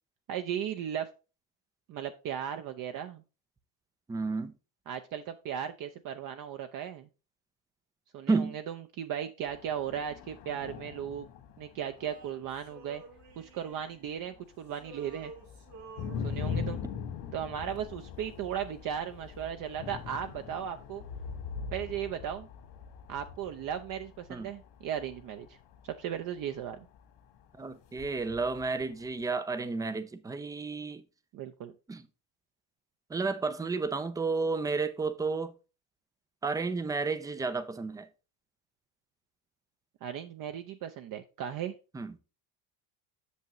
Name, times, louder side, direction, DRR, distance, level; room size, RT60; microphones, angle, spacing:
voice 1, 0.3-1.1 1.9-3.2 4.9-7.1 8.1-11.3 11.6-13.0 13.4-15.3 16.2-16.8 17.3-21.0 21.7-22.5 23.1-25.5 25.8-26.9 31.3-31.7 40.0-41.7, right 9 dB, 45° right, 0.6 m, -36 dB
voice 2, 4.1-4.5 8.3-8.6 24.3-24.5 27.6-31.0 31.9-32.0 33.1-35.5 36.4-38.1 41.9-42.1, right 4 dB, 10° right, 0.3 m, -31 dB
sound 1, 9.5-14.4 14.7-27.4 27.8-29.2, left 6 dB, 75° left, 1.9 m, -42 dB
Male singing, 12.0-14.4 14.7-16.8, right 3 dB, 90° right, 3.8 m, -52 dB
8.3 x 6.5 x 3.0 m
cardioid pair, 125°, 47 cm